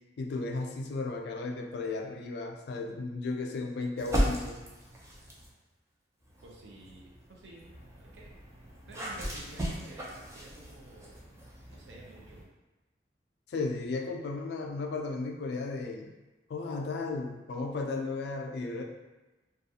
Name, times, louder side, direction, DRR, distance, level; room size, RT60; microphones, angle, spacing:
voice 1, 0.2-4.6 13.5-16.1 16.5-18.8, left 3 dB, 65° left, 3 dB, 0.3 m, -34 dB
sound 1, 4.0-5.6 6.2-12.4, equal, 15° right, 0.3 m, -37 dB
voice 2, 6.4-8.3 8.9-11.2 11.7-12.5, right 2 dB, 80° right, -1 dB, 0.5 m, -52 dB
2.4 x 2.3 x 2.7 m, 1.1 s
head